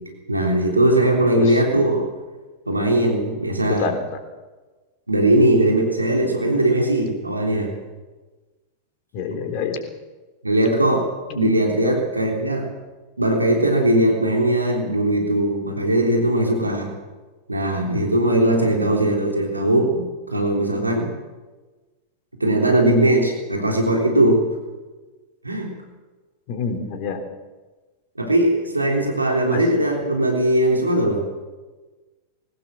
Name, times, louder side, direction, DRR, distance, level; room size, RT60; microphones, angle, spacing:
voice 1, 0.3-2.1 2.7-3.9 5.1-7.7 10.4-11.1 11.3-12.7 13.2-16.9 17.5-21.1 22.4-24.4 25.4-25.7 28.2-31.3, right 1 dB, 80° right, 1 dB, 3.5 m, -19 dB
voice 2, 3.6-4.0 9.1-9.8 11.4-11.5 11.8-12.0 18.7-18.9 26.5-27.2 29.5-29.6, left 6 dB, 45° left, 5 dB, 3.7 m, -27 dB
21.5 x 18.5 x 7.5 m, 1.3 s
figure-of-eight pair, 90°, 0 cm